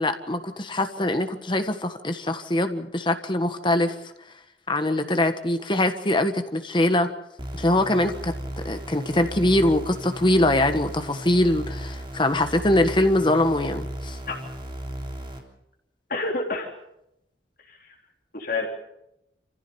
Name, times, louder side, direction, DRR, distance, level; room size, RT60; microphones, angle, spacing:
voice 1, 0.0-3.9 4.7-7.1 7.5-8.3 8.6-14.2, left 1 dB, 25° left, 8 dB, 1.4 m, -23 dB
sound 1, 7.4-15.4, right 1 dB, 30° right, 3.3 m, -35 dB
voice 2, 16.1-16.7 17.7-17.9 18.3-18.7, left 3 dB, 50° left, 1 dB, 3.4 m, -28 dB
27.5 x 15.5 x 7.0 m, 0.83 s
head